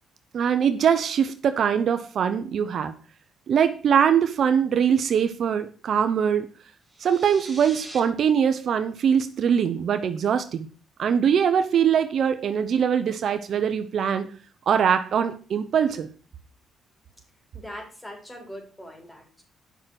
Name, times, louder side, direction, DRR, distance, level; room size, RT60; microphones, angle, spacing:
voice 1, 0.3-2.9 3.5-6.5 7.0-10.7 11.0-14.3 14.7-16.1, right 7 dB, 60° right, 1.0 m, -22 dB
sound 1, 6.9-8.0, right 2 dB, 10° right, 3.9 m, -43 dB
voice 2, 17.5-19.4, equal, 10° left, 4.3 m, -41 dB
9.4 x 6.1 x 6.4 m
cardioid pair, 90°, 0 cm